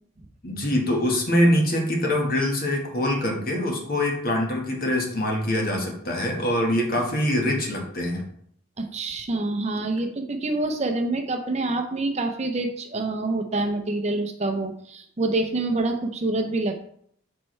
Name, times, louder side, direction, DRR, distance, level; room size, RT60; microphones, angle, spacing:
voice 1, 0.4-8.3, left 1 dB, 45° left, 1 dB, 1.4 m, -24 dB
voice 2, 8.8-16.8, right 2 dB, 30° right, 5 dB, 0.6 m, -26 dB
8.8 x 4.5 x 3.2 m, 0.66 s
head